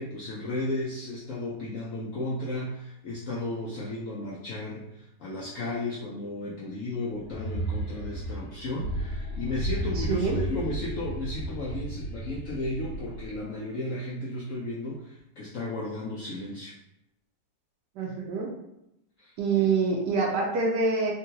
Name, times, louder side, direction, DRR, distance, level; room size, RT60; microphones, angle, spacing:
voice 1, 0.0-16.7 19.2-19.7, left 2 dB, 85° left, -4 dB, 0.7 m, -34 dB
sound 1, 7.2-13.5, right 1 dB, 65° left, 1.3 m, -33 dB
voice 2, 10.0-10.4 18.0-18.5 19.4-21.1, right 4 dB, 75° right, -1 dB, 1.1 m, -26 dB
3.7 x 2.2 x 2.7 m, 0.85 s
omnidirectional pair, 1.9 m